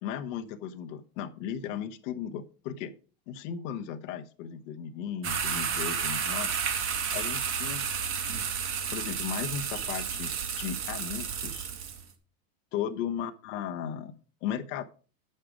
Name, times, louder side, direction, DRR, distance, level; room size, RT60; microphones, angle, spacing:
voice 1, 0.0-2.9 3.3-6.5 7.1-7.9 8.9-11.7 12.7-14.1 14.4-14.8, left 8 dB, 60° left, 6 dB, 1.1 m, -36 dB
sound 1, 5.2-12.0, right 7 dB, 30° right, 1.7 m, -31 dB
8.6 x 6.6 x 5.0 m, 0.38 s
supercardioid pair, 140°, 41 cm